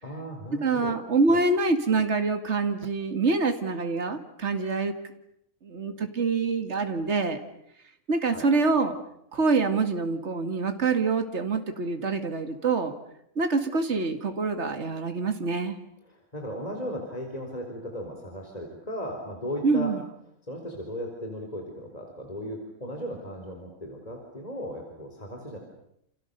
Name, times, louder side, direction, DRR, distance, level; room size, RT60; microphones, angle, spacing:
voice 1, 0.0-1.0 1.3-1.4 8.3-8.5 16.0-19.9 20.4-25.6, equal, 30° left, 2 dB, 4.5 m, -36 dB
voice 2, 0.6-4.9 5.6-7.4 8.1-9.0 9.3-12.9 13.4-15.8 19.6-20.0, right 4 dB, 60° right, 7 dB, 2.4 m, -25 dB
29.5 x 29.0 x 6.8 m, 0.75 s
omnidirectional pair, 1.4 m